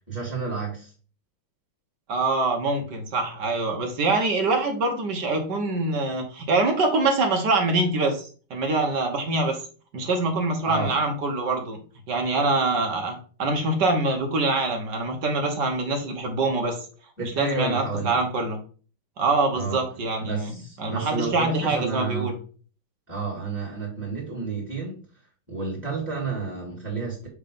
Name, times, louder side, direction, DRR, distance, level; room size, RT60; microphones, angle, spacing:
voice 1, 0.1-0.9 10.6-11.0 17.2-18.2 19.5-19.8 20.2-22.3 23.1-25.0 25.5-27.3, right 4 dB, 5° right, -5 dB, 2.5 m, -30 dB
voice 2, 2.1-9.6 9.9-11.8 12.1-16.8 17.2-18.6 19.2-22.4, right 3 dB, 55° right, 3 dB, 1.6 m, -24 dB
6.4 x 3.7 x 5.3 m, 0.40 s
omnidirectional pair, 2.4 m